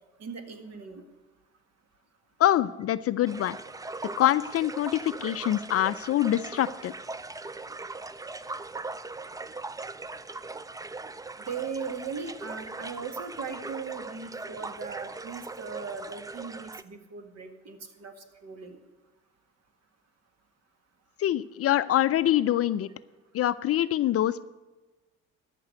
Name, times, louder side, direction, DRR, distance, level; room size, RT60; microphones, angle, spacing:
voice 1, 0.2-1.0 11.5-18.1 18.4-18.8, right 5 dB, 50° right, 7 dB, 1.9 m, -38 dB
voice 2, 2.4-3.6 4.2-6.9 21.2-22.9 23.3-24.5, left 12 dB, 45° left, 14 dB, 0.5 m, -25 dB
sound 1, 3.3-16.8, right 3 dB, 10° right, 0.5 m, -40 dB
13.5 x 6.1 x 8.0 m, 1.2 s
hypercardioid pair, 65°, 34 cm